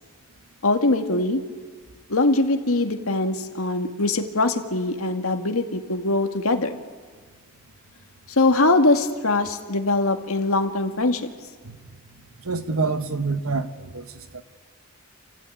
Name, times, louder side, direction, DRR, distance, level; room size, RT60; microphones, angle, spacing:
voice 1, 0.6-1.4 2.1-6.8 8.3-11.2, left 2 dB, 85° left, 5 dB, 2.1 m, -22 dB
voice 2, 12.4-14.0 14.3-14.4, right 4 dB, 80° right, 10 dB, 1.4 m, -26 dB
29.0 x 15.5 x 9.3 m, 1.5 s
head